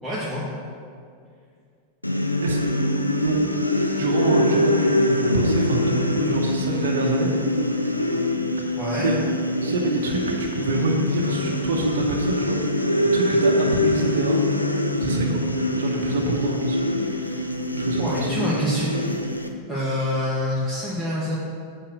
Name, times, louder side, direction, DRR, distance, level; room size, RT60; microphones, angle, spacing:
voice 1, 0.0-0.4 8.8-9.1 18.0-19.0 19.7-21.4, left 1 dB, ahead, -10 dB, 1.9 m, -26 dB
sound 1, 2.0-19.5, left 1 dB, 85° left, 0.6 m, -23 dB
voice 2, 3.8-7.3 8.6-9.2 9.6-14.4 15.0-15.4 15.8-17.5 17.8-18.3, right 3 dB, 60° right, -1 dB, 1.0 m, -27 dB
8.6 x 4.6 x 6.5 m, 2.2 s
figure-of-eight pair, 90°, 0 cm